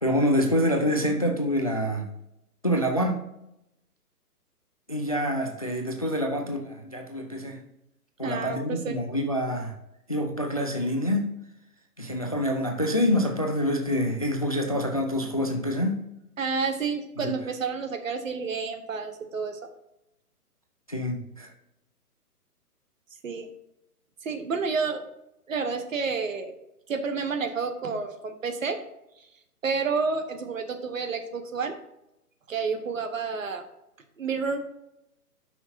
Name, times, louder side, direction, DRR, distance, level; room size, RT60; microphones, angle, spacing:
voice 1, 0.0-2.1 2.6-3.2 4.9-7.6 8.2-9.7 10.1-11.4 12.0-16.1 17.2-17.4 20.9-21.5, equal, 25° left, 3 dB, 0.4 m, -26 dB
voice 2, 8.2-9.0 16.4-19.6 23.2-23.5 24.2-25.0 25.5-26.5 26.9-28.8 29.6-31.8 32.5-33.6 34.2-34.6, right 5 dB, 55° right, 6 dB, 1.3 m, -30 dB
12.0 x 5.9 x 2.7 m, 0.86 s
figure-of-eight pair, 135°, 46 cm